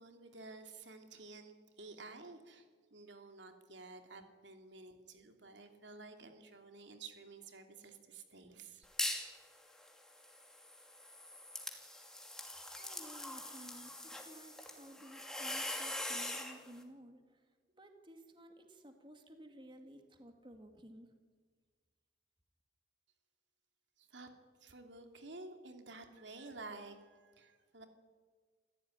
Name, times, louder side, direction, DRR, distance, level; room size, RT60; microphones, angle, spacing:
voice 1, 0.0-8.9 24.0-24.3 24.6-27.9, right 3 dB, 80° right, 5 dB, 2.8 m, -52 dB
sound 1, 8.8-9.3 9.7-16.6, left 1 dB, 5° left, 2.8 m, -42 dB
voice 2, 12.8-17.2 17.8-21.1, right 1 dB, 25° right, 5 dB, 2.4 m, -55 dB
28.0 x 15.5 x 9.8 m, 1.5 s
head